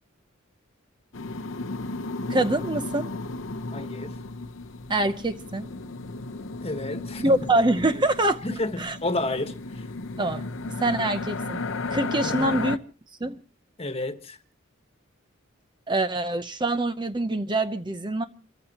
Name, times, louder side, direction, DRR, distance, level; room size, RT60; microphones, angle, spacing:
sound 1, 1.1-12.8, left 3 dB, 70° left, 0.8 m, -34 dB
voice 1, 2.3-3.1 4.9-5.7 7.2-8.4 8.8-9.0 10.2-10.4 10.8-12.8 13.2-13.4 15.9-18.2, right 2 dB, 25° right, 0.7 m, -25 dB
voice 2, 3.7-4.2 6.6-7.4 8.4-9.8 12.2-12.7 13.8-14.4, left 2 dB, 30° left, 1.5 m, -31 dB
29.0 x 14.5 x 2.9 m
head